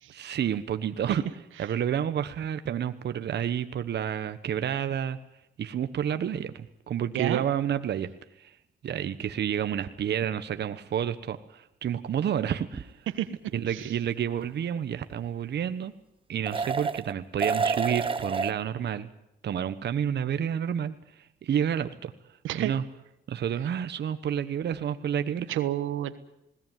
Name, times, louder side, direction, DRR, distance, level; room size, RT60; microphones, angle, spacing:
voice 1, 0.1-1.2 1.6-5.2 5.6-8.1 8.4-8.5 8.8-12.9 13.5-15.9 16.3-19.1 19.4-22.1 22.5-22.8 23.3-25.6, right 9 dB, 60° right, 10 dB, 1.3 m, -30 dB
sound 1, 12.7-12.8 16.5-17.1 17.4-18.5, right 4 dB, 25° right, 1.2 m, -28 dB
voice 2, 25.5-26.2, right 12 dB, 85° right, 11 dB, 1.3 m, -30 dB
20.5 x 18.0 x 9.3 m, 0.84 s
cardioid pair, 90°, 20 cm